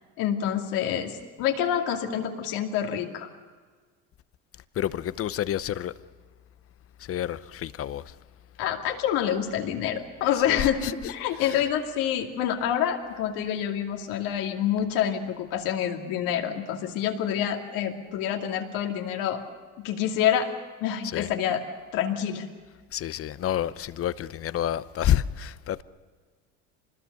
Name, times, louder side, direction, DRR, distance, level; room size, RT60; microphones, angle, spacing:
voice 1, 0.2-3.3 8.6-19.4 19.8-20.5 20.8-21.6 21.9-22.5, left 9 dB, 75° left, 2.6 m, -27 dB
voice 2, 4.8-5.9 7.1-8.0 21.1-21.3 22.9-25.8, left 11 dB, 45° left, 0.8 m, -28 dB
25.0 x 20.5 x 6.9 m
supercardioid pair, 95°, 33 cm